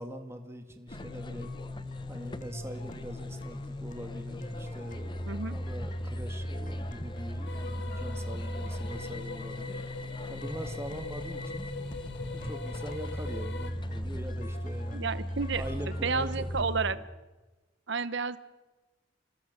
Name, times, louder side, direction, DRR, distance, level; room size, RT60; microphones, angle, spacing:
voice 1, 0.0-1.5 2.1-9.8 10.3-11.7 12.3-15.1 15.5-17.1, equal, 15° right, 5 dB, 1.9 m, -42 dB
sound 1, 0.9-16.9, equal, 40° left, 2.0 m, -38 dB
sound 2, 0.9-16.6, left 1 dB, 25° left, 0.9 m, -45 dB
sound 3, 7.5-13.7, left 3 dB, 60° left, 2.0 m, -43 dB
voice 2, 14.9-15.6 16.0-17.0 17.9-18.4, right 4 dB, 60° right, 14 dB, 0.9 m, -31 dB
27.5 x 20.0 x 6.8 m, 1.2 s
head